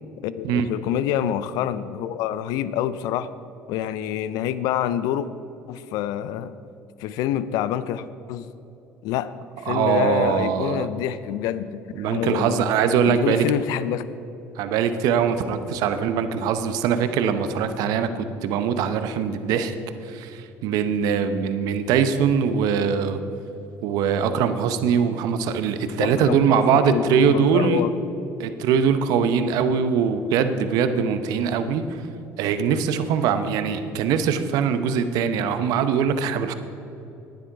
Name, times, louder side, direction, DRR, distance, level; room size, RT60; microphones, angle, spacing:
voice 1, 0.2-3.3 3.7-5.3 5.7-6.5 7.0-8.5 9.0-9.3 9.6-12.7 13.0-14.1 26.0-27.9, left 11 dB, 75° left, 15 dB, 0.5 m, -27 dB
voice 2, 9.7-10.9 12.0-13.5 14.6-19.7 20.0-23.2 23.8-27.8 28.4-32.0 32.4-36.5, right 7 dB, 75° right, 10 dB, 0.8 m, -22 dB
10.5 x 10.0 x 4.7 m, 2.9 s
supercardioid pair, 85°, 7 cm